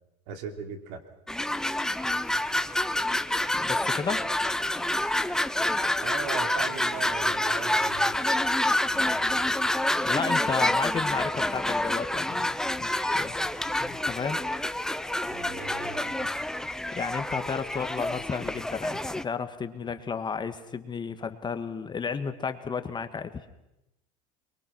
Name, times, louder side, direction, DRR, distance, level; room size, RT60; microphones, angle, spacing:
voice 1, 0.3-1.0 6.0-8.2 8.9-9.7 15.3-16.3, right 5 dB, 70° right, 5 dB, 3.3 m, -39 dB
sound 1, 1.3-19.2, left 1 dB, 5° left, 0.7 m, -28 dB
voice 2, 3.7-4.3 10.0-13.3 13.8-14.4 16.9-23.3, left 5 dB, 25° left, 9 dB, 1.5 m, -33 dB
23.0 x 22.5 x 6.1 m, 0.90 s
supercardioid pair, 100°, 19 cm